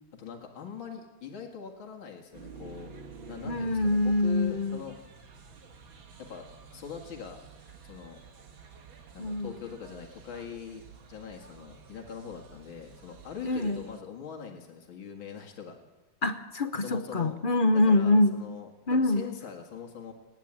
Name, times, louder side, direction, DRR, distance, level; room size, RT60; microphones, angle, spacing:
voice 1, 0.1-2.9 3.3-5.0 6.2-6.5 6.7-7.4 7.8-8.2 9.1-15.8 16.8-17.4 17.9-20.1, left 7 dB, 80° left, 2 dB, 2.7 m, -42 dB
sound 1, 2.3-14.0, right 5 dB, 75° right, 2.6 m, -50 dB
voice 2, 3.5-4.8 9.2-9.5 13.4-13.8 16.2-18.4 18.9-19.2, left 2 dB, 40° left, 9 dB, 0.7 m, -25 dB
29.0 x 10.5 x 8.9 m, 1.1 s
omnidirectional pair, 2.2 m